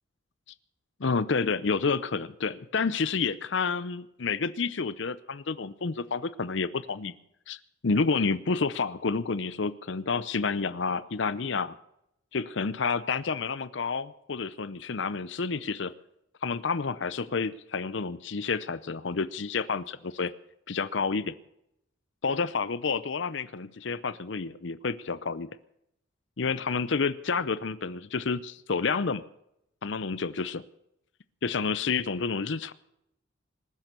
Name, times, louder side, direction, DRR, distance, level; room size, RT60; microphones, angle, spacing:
voice 1, 1.0-7.1 7.5-11.8 12.3-15.9 16.4-20.3 20.7-21.3 22.2-25.5 26.4-29.2 29.8-30.6 31.4-32.7, left 4 dB, 60° left, 15 dB, 0.6 m, -29 dB
19.5 x 10.5 x 6.7 m, 0.79 s
head